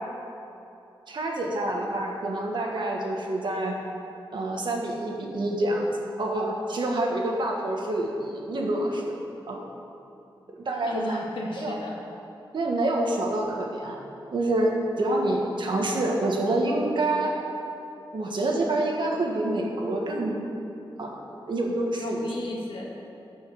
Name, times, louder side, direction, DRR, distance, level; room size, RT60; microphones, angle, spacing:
voice 1, 1.1-3.8 4.3-5.9 6.2-9.1 9.5-9.6 10.6-11.2 11.6-11.8 12.5-14.0 14.3-17.4 18.1-20.5 21.0-21.2 21.5-22.3, right 1 dB, 65° right, 0 dB, 1.6 m, -27 dB
voice 2, 10.7-12.0 22.0-22.8, left 1 dB, 75° left, -2 dB, 1.9 m, -34 dB
13.0 x 5.5 x 6.9 m, 2.9 s
wide cardioid pair, 170°, 9 cm